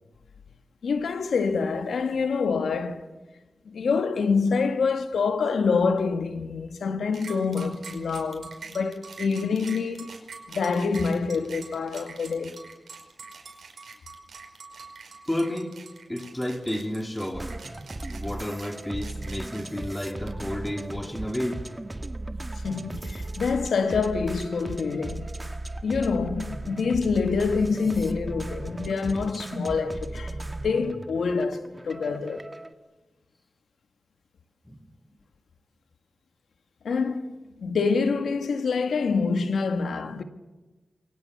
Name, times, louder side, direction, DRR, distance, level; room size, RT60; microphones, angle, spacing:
voice 1, 0.8-3.1 3.6-10.1 10.5-12.6 22.6-25.5 25.8-30.4 30.6-32.5 36.8-37.3 37.6-40.2, left 5 dB, 85° left, 1.7 m, -26 dB
sound 1, 7.1-20.5, right 5 dB, 80° right, 5.2 m, -44 dB
voice 2, 15.2-15.8 16.1-17.6 18.1-21.7 34.6-35.1, left 1 dB, 15° left, 3.7 m, -31 dB
sound 2, 17.3-32.7, right 2 dB, 25° right, 1.8 m, -37 dB
28.0 x 23.0 x 6.9 m
cardioid pair, 50°, 0 cm